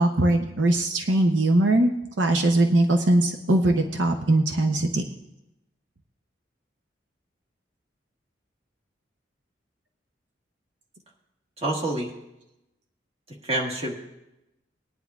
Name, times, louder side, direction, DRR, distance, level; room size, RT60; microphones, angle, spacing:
voice 1, 0.0-1.9 2.2-5.0, right 1 dB, 80° right, 4 dB, 0.7 m, -21 dB
voice 2, 11.6-12.1 13.4-13.9, right 1 dB, 35° right, 0 dB, 1.5 m, -27 dB
19.5 x 10.0 x 2.4 m, 0.92 s
head